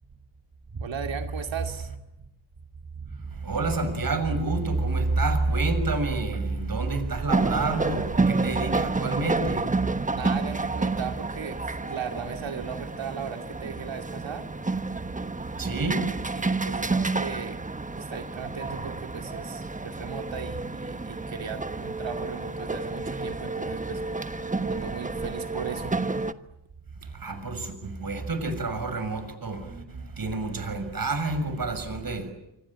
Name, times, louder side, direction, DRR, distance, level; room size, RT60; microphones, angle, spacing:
voice 1, 0.8-1.9 10.1-14.5 15.6-15.9 16.3-17.6 17.9-24.4 24.7-26.0, right 6 dB, 65° right, 2.7 m, -37 dB
voice 2, 3.4-9.7 10.1-10.2 15.6-16.1 27.1-32.3, right 3 dB, 45° right, 6.6 m, -28 dB
sound 1, 7.3-26.3, right 3 dB, 15° right, 1.2 m, -30 dB
26.5 x 25.5 x 8.8 m
cardioid pair, 75°, 48 cm